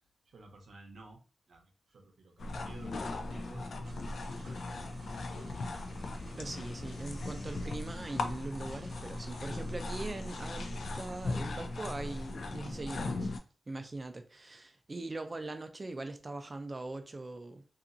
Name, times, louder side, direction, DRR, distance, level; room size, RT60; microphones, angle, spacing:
voice 1, 0.3-1.2 1.5-4.6, right 2 dB, 85° right, 0.6 m, -54 dB
sound 1, 2.4-13.4, left 2 dB, 80° left, 0.3 m, -38 dB
sound 2, 3.8-11.4, right 1 dB, 65° right, 0.9 m, -54 dB
voice 2, 6.3-13.3 13.7-17.6, right 2 dB, 30° right, 0.4 m, -41 dB
2.7 x 2.4 x 2.5 m
wide cardioid pair, 135°, 0 cm